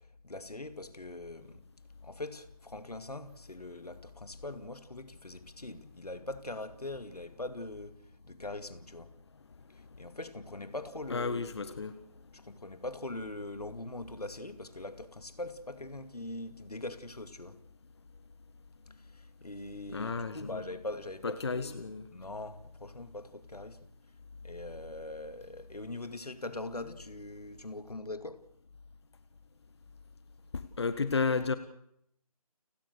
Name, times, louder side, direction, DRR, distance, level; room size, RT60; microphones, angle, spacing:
voice 1, 0.0-1.6 2.0-8.0 8.2-9.1 10.0-11.8 12.3-17.6 18.9-23.8 24.4-28.4, left 2 dB, 75° left, 2.4 m, -42 dB
voice 2, 11.1-12.0 19.9-20.6 21.2-22.1 30.5-31.5, left 4 dB, 45° left, 1.4 m, -32 dB
29.5 x 18.5 x 6.7 m
figure-of-eight pair, 160°, 20 cm